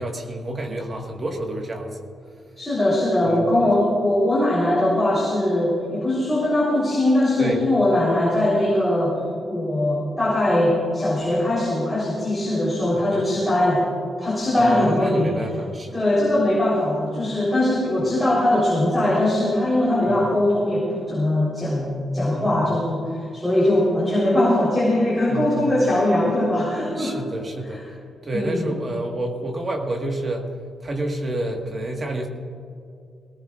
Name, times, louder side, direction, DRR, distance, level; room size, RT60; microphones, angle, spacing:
voice 1, 0.0-2.0 3.2-3.5 7.4-7.6 12.9-13.2 14.5-16.0 18.0-18.1 20.0-20.1 22.3-22.7 25.3-25.7 27.0-27.8 28.2-30.5 30.8-32.3, right 1 dB, 25° right, 2 dB, 1.6 m, -29 dB
voice 2, 2.6-9.2 9.5-13.9 14.2-15.3 15.9-27.1 27.7-27.8 28.3-28.7, left 1 dB, 5° left, -8 dB, 3.9 m, -21 dB
20.5 x 18.0 x 2.5 m, 2.4 s
wide cardioid pair, 175°, 0 cm